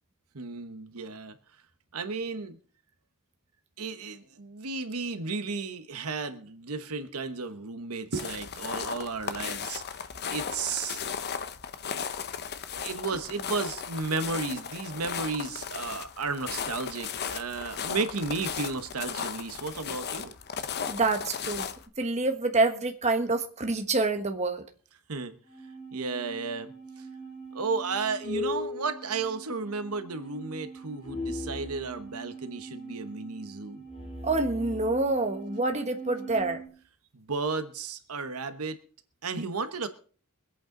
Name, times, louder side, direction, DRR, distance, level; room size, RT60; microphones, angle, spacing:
voice 1, 0.3-1.4 1.9-2.6 3.8-10.0 10.3-11.0 12.8-20.3 25.1-25.4 25.9-27.1 27.5-33.8 37.1-38.8 39.2-39.9, right 4 dB, 75° right, 1.1 m, -33 dB
sound 1, 8.1-21.9, left 7 dB, 50° left, 0.9 m, -36 dB
voice 2, 20.9-21.7 22.0-24.6 34.2-36.6, right 3 dB, 30° right, 1.3 m, -27 dB
sound 2, 25.5-36.7, equal, 25° left, 4.2 m, -40 dB
24.0 x 8.6 x 3.8 m
head